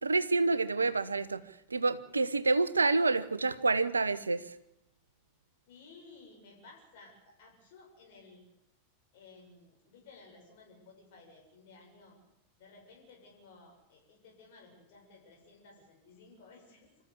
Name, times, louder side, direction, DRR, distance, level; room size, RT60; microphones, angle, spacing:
voice 1, 0.0-1.4 1.7-4.4, right 3 dB, 80° right, 15 dB, 0.9 m, -28 dB
voice 2, 5.7-8.4 9.1-12.2 12.6-17.0, left 3 dB, 55° left, 0 dB, 6.6 m, -56 dB
26.0 x 14.0 x 8.3 m, 0.88 s
figure-of-eight pair, 90°, 0 cm